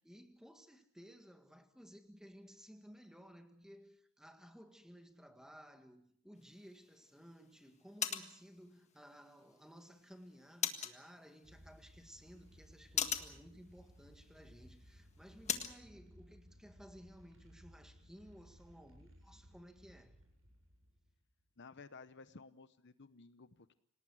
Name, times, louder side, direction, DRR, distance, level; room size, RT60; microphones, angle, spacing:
voice 1, 0.0-20.2, equal, 5° right, 1.8 m, -57 dB
sound 1, 6.4-15.8, left 8 dB, 30° left, 1.6 m, -44 dB
sound 2, 11.4-21.5, equal, 70° right, 7.9 m, -61 dB
voice 2, 21.6-23.7, left 4 dB, 55° left, 0.9 m, -55 dB
27.5 x 18.5 x 6.2 m
head